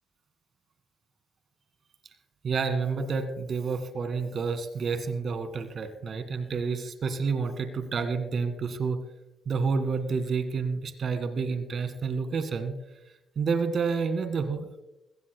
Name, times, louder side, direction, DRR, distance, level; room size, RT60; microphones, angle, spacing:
voice 1, 2.4-9.0 9.5-12.7 13.4-14.7, right 5 dB, 55° right, 9 dB, 1.8 m, -29 dB
22.0 x 16.0 x 2.2 m, 0.91 s
cardioid pair, 90°, 0 cm